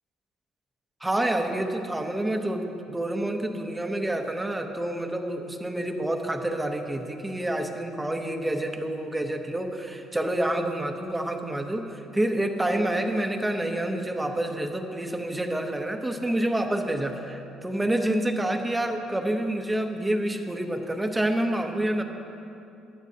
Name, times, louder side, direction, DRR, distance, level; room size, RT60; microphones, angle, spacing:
voice 1, 1.0-22.0, right 1 dB, 10° right, 4 dB, 0.8 m, -28 dB
20.5 x 13.5 x 2.8 m, 2.8 s
cardioid pair, 155°, 0 cm